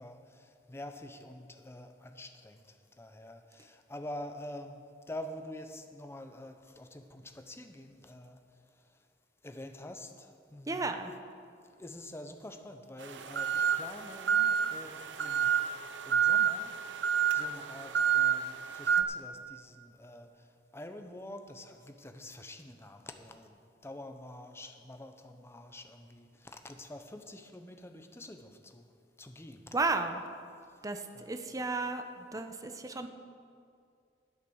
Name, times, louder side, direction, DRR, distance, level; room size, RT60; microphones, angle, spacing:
voice 1, 0.0-4.8 5.1-8.4 9.4-10.9 11.8-15.7 16.0-20.5 20.7-28.9 29.2-29.6 31.1-31.3, left 1 dB, 15° left, 6 dB, 0.8 m, -47 dB
voice 2, 10.7-11.1 29.7-30.2 30.8-33.1, right 3 dB, 20° right, 7 dB, 0.7 m, -33 dB
sound 1, 13.0-19.0, right 8 dB, 80° right, 0.7 m, -29 dB
12.5 x 8.3 x 6.3 m, 2.3 s
head